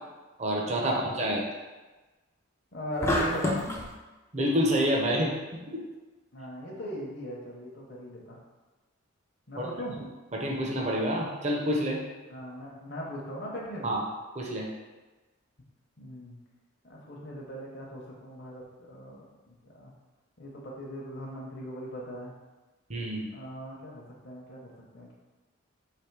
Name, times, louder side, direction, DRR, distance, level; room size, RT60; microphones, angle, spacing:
voice 1, 0.4-1.4 4.3-5.8 9.6-9.7 10.3-12.0 13.8-14.0 14.4-14.7 22.9-23.3, equal, 30° right, -2 dB, 0.6 m, -28 dB
voice 2, 2.7-3.6 6.3-8.4 9.5-10.0 12.3-13.9 16.0-16.4 16.8-19.9 20.4-22.3 23.3-25.1, equal, 50° left, -3 dB, 0.8 m, -39 dB
sound 1, 3.0-3.9, left 1 dB, 15° left, 0.4 m, -27 dB
3.4 x 3.1 x 4.6 m, 1.2 s
head